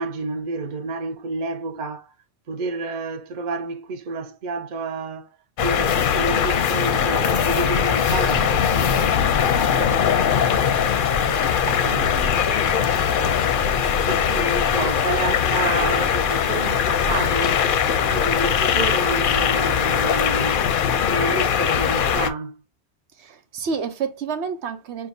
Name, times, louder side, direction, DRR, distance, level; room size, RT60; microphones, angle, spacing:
voice 1, 0.0-2.1 2.5-5.3 5.6-10.5 11.8-12.5 13.8-17.7 18.1-20.6 21.1-22.6, right 3 dB, 50° right, 0.7 m, -30 dB
sound 1, 5.6-22.3, left 8 dB, 60° left, 0.6 m, -21 dB
sound 2, 10.4-22.2, left 4 dB, 35° right, 1.8 m, -38 dB
voice 2, 23.2-25.1, right 5 dB, 85° right, 1.0 m, -29 dB
6.5 x 2.3 x 2.6 m
omnidirectional pair, 1.1 m